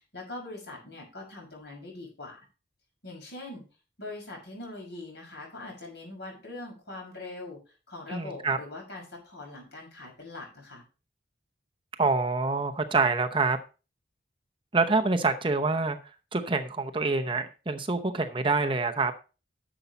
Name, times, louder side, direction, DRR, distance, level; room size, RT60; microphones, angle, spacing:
voice 1, 0.1-2.4 3.0-3.6 4.0-7.6 7.9-10.8, left 2 dB, 70° left, 0 dB, 6.2 m, -42 dB
voice 2, 8.1-8.6 12.0-13.6 14.7-16.0 16.3-19.1, right 3 dB, 30° right, 7 dB, 0.8 m, -26 dB
11.0 x 7.1 x 4.1 m, 0.32 s
head